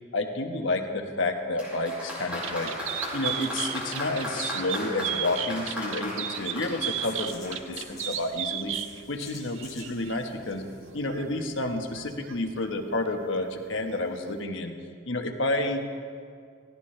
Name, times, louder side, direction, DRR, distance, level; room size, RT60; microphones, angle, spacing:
voice 1, 0.1-2.7 3.1-8.7 9.1-10.6 10.9-14.7 15.1-15.8, left 2 dB, 65° left, 4 dB, 1.2 m, -30 dB
Applause, 1.6-8.0, equal, 5° right, 4.4 m, -36 dB
sound 1, 2.3-14.4, right 10 dB, 70° right, 0.5 m, -37 dB
sound 2, 7.0-12.5, left 4 dB, 20° left, 2.8 m, -49 dB
17.0 x 16.5 x 3.3 m, 2.2 s
head